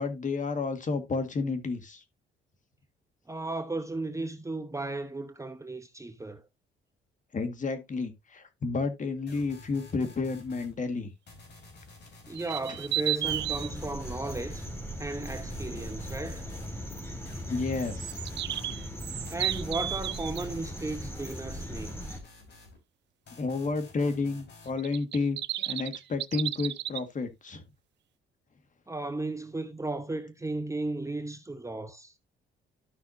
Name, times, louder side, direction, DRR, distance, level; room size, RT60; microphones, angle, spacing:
voice 1, 0.0-2.0 7.3-11.1 17.5-18.2 23.4-25.4 25.6-27.6, left 4 dB, 40° left, 1.8 m, -31 dB
voice 2, 3.3-6.4 12.3-14.7 15.0-16.5 19.3-22.0 28.9-32.1, right 2 dB, 15° right, 0.9 m, -35 dB
sound 1, 9.3-10.7 11.3-14.8 15.3-16.7 17.2-18.7 19.3-22.8 23.3-24.7, left 3 dB, 60° left, 4.5 m, -51 dB
sound 2, 12.3-13.7 17.8-20.4 24.8-27.0, right 13 dB, 60° right, 0.5 m, -33 dB
sound 3, 13.2-22.2, equal, 10° left, 3.4 m, -39 dB
13.0 x 5.7 x 2.7 m
cardioid pair, 90°, 20 cm